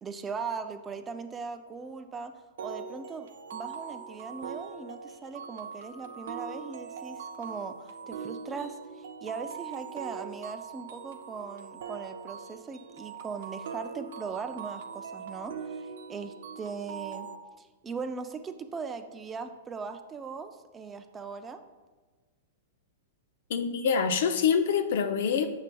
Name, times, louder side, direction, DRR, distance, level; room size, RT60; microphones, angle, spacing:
voice 1, 0.0-17.3 17.6-21.6, right 5 dB, 15° right, 8 dB, 0.3 m, -39 dB
sound 1, 2.6-17.4, right 6 dB, 75° right, 0.5 m, -41 dB
voice 2, 23.5-25.5, left 6 dB, 70° left, 9 dB, 0.5 m, -25 dB
7.4 x 6.4 x 2.2 m, 1.3 s
hypercardioid pair, 140°, 0 cm